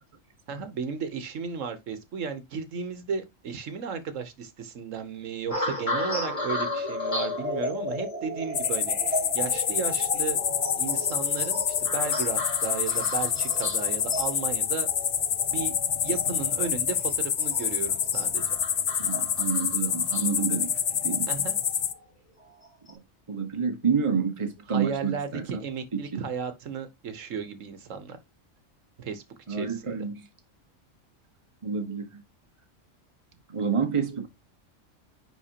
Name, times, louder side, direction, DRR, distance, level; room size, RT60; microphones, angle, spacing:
voice 1, 0.5-10.4 10.8-14.9 15.5-15.8 16.0-18.5 21.3-21.6 24.7-28.2 29.0-29.2 29.5-29.9, right 6 dB, 75° right, 1.3 m, -34 dB
sound 1, 5.5-22.0 22.6-22.9, left 2 dB, 25° left, 3.3 m, -34 dB
sound 2, 8.5-21.9, left 8 dB, 55° left, 0.5 m, -27 dB
voice 2, 19.0-21.3 22.9-23.0 23.3-25.6 26.1-26.2 29.5-30.3 31.6-32.2 33.5-34.3, right 6 dB, 25° right, 1.0 m, -29 dB
9.9 x 3.7 x 2.8 m
omnidirectional pair, 1.3 m